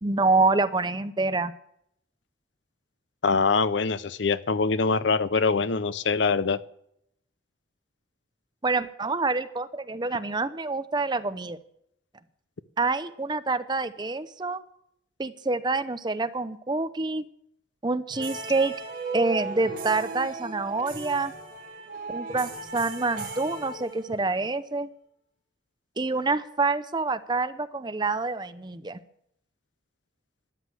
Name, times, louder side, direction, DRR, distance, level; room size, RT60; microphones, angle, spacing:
voice 1, 0.0-1.5 8.6-11.6 12.8-14.6 15.2-17.2 17.8-18.7 19.1-21.3 22.1-24.9 26.0-29.0, right 3 dB, 25° right, 12 dB, 0.7 m, -27 dB
voice 2, 3.2-6.6, left 4 dB, 70° left, 15 dB, 0.7 m, -24 dB
sound 1, 18.1-24.4, right 3 dB, 45° right, 4.2 m, -36 dB
13.0 x 10.5 x 7.9 m, 0.72 s
head